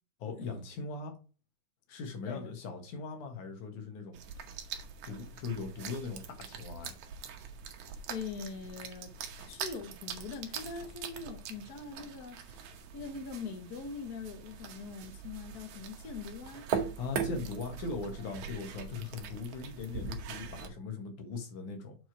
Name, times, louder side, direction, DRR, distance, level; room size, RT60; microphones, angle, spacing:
voice 1, 0.2-1.1 1.9-4.2 5.1-7.0 17.0-22.0, left 4 dB, 80° left, 3.1 m, -39 dB
sound 1, 4.1-20.7, right 7 dB, 80° right, 2.4 m, -42 dB
voice 2, 8.1-9.1 9.4-12.7 12.9-16.7, left 5 dB, 55° left, 1.1 m, -42 dB
6.9 x 4.7 x 4.6 m
omnidirectional pair, 3.4 m